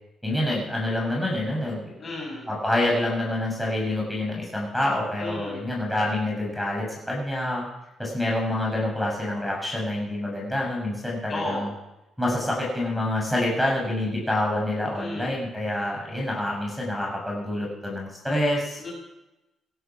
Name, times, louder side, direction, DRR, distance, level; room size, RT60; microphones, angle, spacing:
voice 1, 0.2-2.0 2.5-7.6 8.0-11.7 12.2-18.8, left 1 dB, 5° left, -4 dB, 7.0 m, -27 dB
voice 2, 2.0-2.5 5.2-5.6 11.3-11.7 15.0-15.3 18.8-18.9, left 2 dB, 35° left, -1 dB, 7.3 m, -33 dB
18.0 x 11.5 x 6.2 m, 0.93 s
cardioid pair, 90°, 0 cm